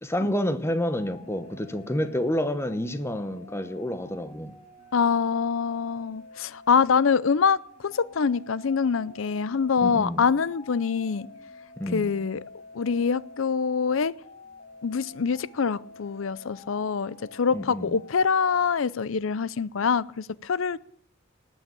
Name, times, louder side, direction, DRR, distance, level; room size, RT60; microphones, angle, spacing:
voice 1, 0.0-4.5 9.8-10.2 11.8-12.1 17.5-18.0, equal, 15° left, 1.0 m, -29 dB
sound 1, 0.6-18.6, left 2 dB, 35° left, 4.1 m, -49 dB
voice 2, 4.9-11.3 11.9-12.4 12.7-14.1 14.8-20.8, left 6 dB, 80° left, 0.6 m, -25 dB
19.0 x 6.4 x 8.9 m
head